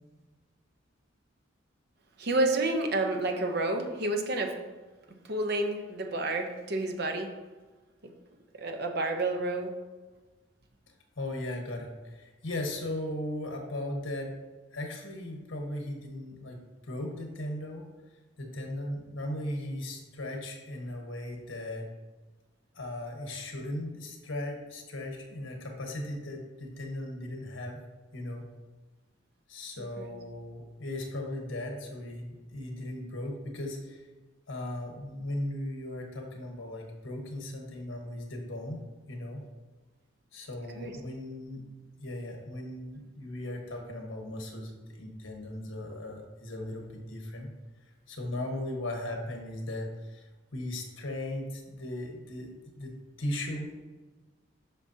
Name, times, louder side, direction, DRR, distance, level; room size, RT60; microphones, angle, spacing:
voice 1, 2.2-4.5 5.3-7.3 8.6-9.7 30.0-30.1 40.8-41.0, right 2 dB, 55° right, 4 dB, 0.8 m, -29 dB
voice 2, 11.2-14.4 14.7-17.9 18.4-21.9 22.7-27.8 28.1-28.5 29.5-34.0 34.5-39.4 40.3-41.6 42.0-47.5 48.1-52.9 53.2-53.9, left 1 dB, 85° left, 2 dB, 1.3 m, -37 dB
8.2 x 5.8 x 2.8 m, 1.3 s
head